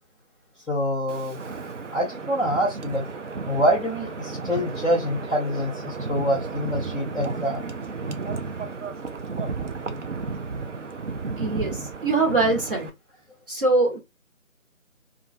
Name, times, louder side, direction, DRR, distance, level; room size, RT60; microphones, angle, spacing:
voice 1, 0.7-1.4 1.9-3.0 3.5-7.6, equal, ahead, 0.6 m, -25 dB
Wind, 1.1-12.9, right 4 dB, 60° right, 0.5 m, -33 dB
voice 2, 11.4-12.9 13.5-14.0, right 3 dB, 40° right, 1.3 m, -23 dB
2.3 x 2.3 x 2.5 m
figure-of-eight pair, 170°, 41 cm